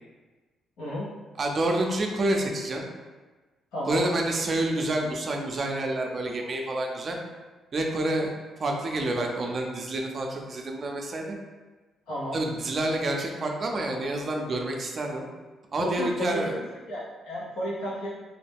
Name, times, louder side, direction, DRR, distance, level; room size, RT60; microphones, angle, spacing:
voice 1, 0.8-1.1 3.7-4.0 12.1-12.4 15.8-16.6 16.9-18.1, equal, 90° left, -6 dB, 0.8 m, -32 dB
voice 2, 1.4-2.9 3.9-7.2 7.7-8.3 8.6-11.4 12.3-15.3 15.7-16.5, right 1 dB, 45° right, 2 dB, 0.4 m, -28 dB
2.4 x 2.1 x 3.4 m, 1.3 s
cardioid pair, 90°, 0 cm